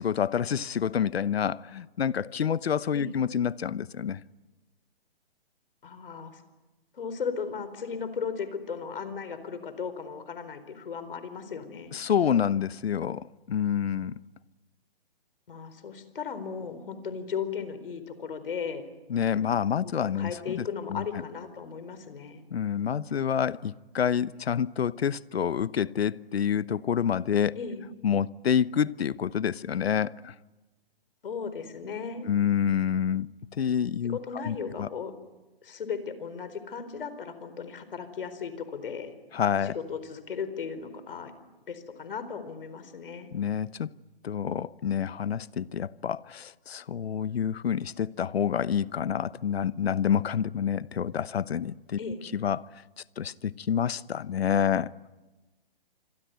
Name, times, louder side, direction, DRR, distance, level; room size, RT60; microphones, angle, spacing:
voice 1, 0.0-4.2 11.9-14.2 19.1-20.6 20.9-21.1 22.5-27.5 28.0-30.3 32.3-33.3 33.6-34.2 34.5-34.9 39.3-39.8 43.3-43.9 44.2-52.0 52.3-52.6 53.2-54.9, left 8 dB, 90° left, 1.0 m, -28 dB
voice 2, 5.8-6.4 6.9-11.9 15.5-18.9 19.8-22.4 27.6-27.8 31.2-32.3 34.0-35.1 35.6-39.1 39.6-41.3 41.7-43.3 52.0-52.2, left 6 dB, 65° left, 4.4 m, -36 dB
26.5 x 22.5 x 9.4 m
hypercardioid pair, 175°, 30 cm